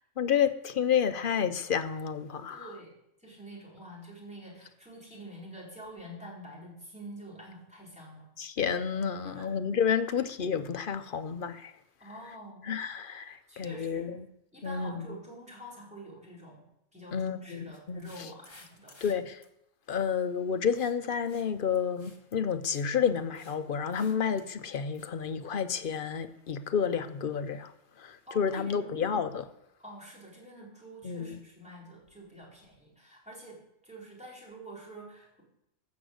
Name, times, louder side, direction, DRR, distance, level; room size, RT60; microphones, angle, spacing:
voice 1, 0.2-2.7 8.4-11.7 12.7-14.3 14.6-15.1 17.1-18.1 19.0-19.4 19.9-27.7 28.0-29.5 31.0-31.4, left 7 dB, 50° left, 0.8 m, -30 dB
voice 2, 2.5-2.9 3.2-8.3 9.2-9.5 12.0-12.7 13.5-14.1 14.5-16.6 16.9-19.0 28.3-28.9 29.8-33.6 33.8-35.4, right 1 dB, 5° right, 4.1 m, -47 dB
sound 1, 17.7-19.1 19.4-19.5 20.7-21.0 21.3-21.5 21.7-22.2 22.5-22.9 23.1-23.6 23.9-24.5 24.9-25.1, left 2 dB, 20° left, 1.4 m, -56 dB
13.0 x 6.3 x 8.0 m
omnidirectional pair, 1.3 m